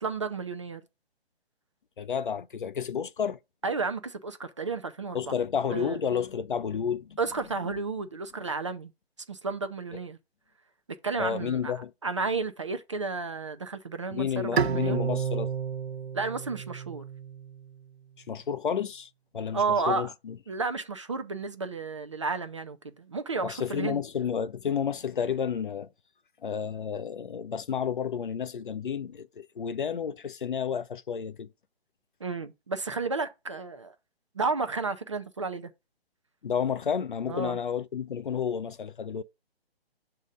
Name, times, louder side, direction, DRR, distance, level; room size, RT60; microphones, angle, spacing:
voice 1, 0.0-0.8 3.6-5.4 5.7-6.0 7.2-8.9 9.3-10.2 11.0-15.0 16.1-17.0 19.5-20.1 20.5-24.0 32.2-33.9 34.3-35.7 37.3-37.6, right 4 dB, 30° right, 0.4 m, -32 dB
voice 2, 2.0-3.4 5.1-7.2 11.2-11.9 14.1-15.5 18.3-20.4 23.4-25.9 26.4-31.5 36.4-39.2, left 7 dB, 55° left, 0.5 m, -31 dB
Bowed string instrument, 14.6-17.8, right 7 dB, 85° right, 0.6 m, -31 dB
7.2 x 2.8 x 5.0 m
figure-of-eight pair, 140°, 31 cm